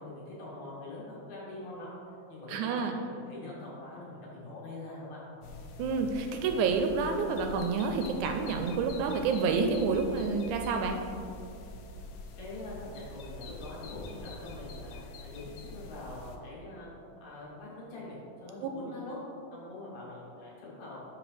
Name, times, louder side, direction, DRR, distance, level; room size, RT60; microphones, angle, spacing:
voice 1, 0.0-1.9 2.3-5.2 12.4-16.9 17.2-19.2 19.5-21.0, left 2 dB, 65° left, -6 dB, 2.8 m, -44 dB
voice 2, 2.5-2.9 5.8-11.0 18.6-18.7, right 4 dB, 80° right, 4 dB, 1.9 m, -29 dB
sound 1, 5.4-16.4, left 2 dB, 85° left, 1.5 m, -45 dB
10.0 x 4.6 x 3.3 m, 2.6 s
omnidirectional pair, 3.6 m